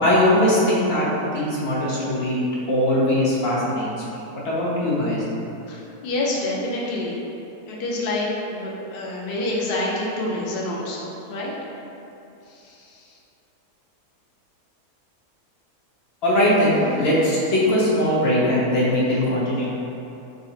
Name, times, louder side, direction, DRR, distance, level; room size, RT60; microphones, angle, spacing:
voice 1, 0.0-5.2 16.2-19.7, left 1 dB, 50° left, -7 dB, 0.9 m, -21 dB
voice 2, 5.7-7.2 7.7-11.5, left 2 dB, 85° left, -4 dB, 0.5 m, -27 dB
3.7 x 2.4 x 4.0 m, 2.9 s
omnidirectional pair, 1.6 m